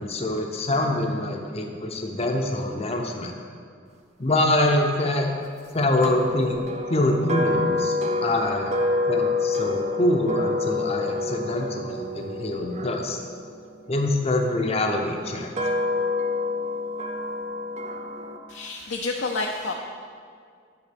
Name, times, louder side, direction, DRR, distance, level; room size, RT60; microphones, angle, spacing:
voice 1, 0.0-3.3 4.2-5.3 5.7-6.6 6.9-8.8 9.1-13.2 13.9-15.7, left 1 dB, 35° left, 2 dB, 0.7 m, -25 dB
sound 1, 6.0-14.2 14.9-18.4, left 2 dB, 35° right, 0.6 m, -28 dB
voice 2, 18.5-19.7, left 3 dB, 70° left, 1 dB, 0.6 m, -29 dB
9.8 x 3.8 x 6.8 m, 2.1 s
head